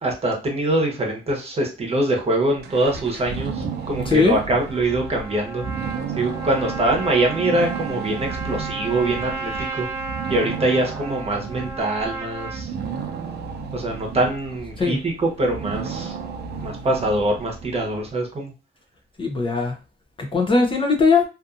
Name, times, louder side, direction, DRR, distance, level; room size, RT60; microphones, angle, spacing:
voice 1, 0.0-5.7 6.1-9.9 10.3-12.7 13.7-16.1 16.6-18.5, right 2 dB, 30° right, 1 dB, 0.9 m, -23 dB
sound 1, 2.6-18.0, right 5 dB, 55° right, 0.5 m, -33 dB
voice 2, 4.1-4.4 14.8-15.0 19.2-19.7 20.2-21.2, left 4 dB, 25° left, 1 dB, 0.5 m, -19 dB
Trumpet, 4.6-12.6, right 3 dB, 10° right, 1.3 m, -34 dB
2.6 x 2.5 x 2.4 m, 0.32 s
cardioid pair, 90°, 20 cm